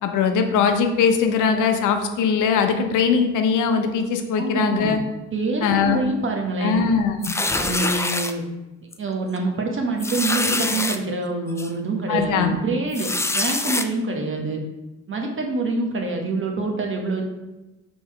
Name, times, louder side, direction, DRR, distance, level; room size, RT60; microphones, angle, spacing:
voice 1, 0.0-5.0 5.6-6.0 6.6-7.3 12.1-12.6, left 6 dB, 85° left, 6 dB, 0.7 m, -20 dB
voice 2, 4.4-5.0 5.3-6.8 7.5-8.4 9.0-14.6 15.1-17.2, right 3 dB, 40° right, 1 dB, 1.3 m, -26 dB
sound 1, 7.2-8.3 8.9-9.1 9.4-9.5 10.0-11.0 11.6-11.7 12.9-13.9, left 2 dB, 10° left, 0.4 m, -24 dB
5.3 x 4.0 x 4.8 m, 1.0 s
cardioid pair, 90°, 30 cm